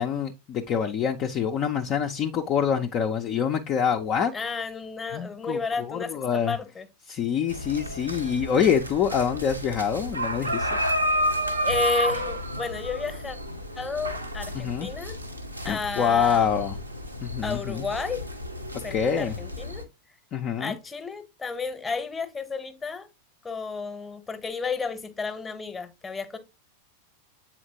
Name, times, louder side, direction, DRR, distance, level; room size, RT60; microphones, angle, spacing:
voice 1, 0.0-4.3 5.1-6.6 7.1-10.9 14.5-14.9 15.6-16.8 17.2-17.8 18.9-19.4 20.3-20.7, left 7 dB, 35° left, 0.5 m, -26 dB
voice 2, 4.3-6.9 11.1-11.2 11.6-13.4 13.8-15.2 15.6-16.5 17.4-18.2 18.8-19.8 20.6-23.1 23.4-26.4, left 4 dB, 15° left, 0.9 m, -32 dB
sound 1, 7.5-19.8, equal, 85° right, 0.8 m, -31 dB
7.8 x 4.3 x 2.8 m
figure-of-eight pair, 90°, 0 cm